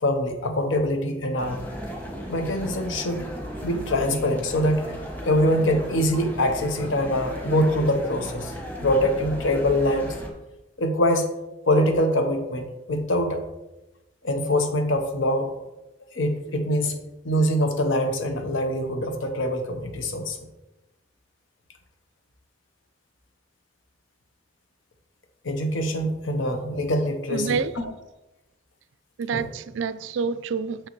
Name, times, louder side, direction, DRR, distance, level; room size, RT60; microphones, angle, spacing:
voice 1, 0.0-1.6 2.3-3.2 3.6-8.5 8.8-10.1 10.8-11.3 11.7-13.4 14.2-15.5 16.1-17.0 17.2-20.4 25.4-27.6 29.3-29.4, left 1 dB, 90° left, 0.9 m, -24 dB
sound 1, 1.4-10.3, equal, 10° left, 0.9 m, -36 dB
voice 2, 27.3-27.8 29.2-30.9, right 5 dB, 75° right, 0.3 m, -28 dB
6.5 x 6.3 x 3.1 m
head